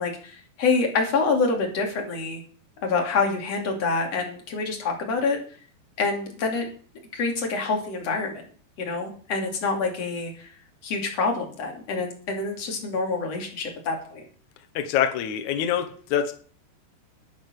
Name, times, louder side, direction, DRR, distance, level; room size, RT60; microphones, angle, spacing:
voice 1, 0.0-2.4 2.8-5.4 6.0-6.7 7.1-8.4 8.8-10.5 10.8-14.2, left 4 dB, 40° left, 3.3 m, -26 dB
voice 2, 14.7-16.3, left 9 dB, 90° left, 1.6 m, -25 dB
10.5 x 10.0 x 6.4 m
omnidirectional pair, 5.1 m